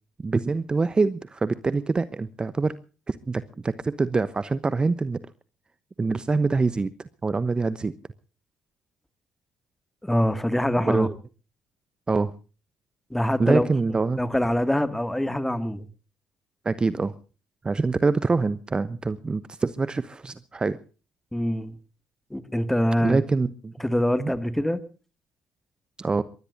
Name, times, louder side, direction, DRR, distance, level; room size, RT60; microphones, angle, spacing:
voice 1, 0.2-2.8 3.1-5.2 6.0-7.9 10.8-11.1 12.1-12.3 13.4-14.2 16.6-17.1 17.6-20.8 23.0-23.7 24.2-24.3 26.0-26.2, right 3 dB, 25° right, 16 dB, 0.9 m, -25 dB
voice 2, 10.0-11.1 13.1-13.7 14.2-15.9 21.3-21.7 22.3-23.2 23.8-24.8, equal, 5° left, 12 dB, 2.1 m, -24 dB
23.5 x 20.0 x 2.7 m, 0.36 s
hypercardioid pair, 50°, 3 cm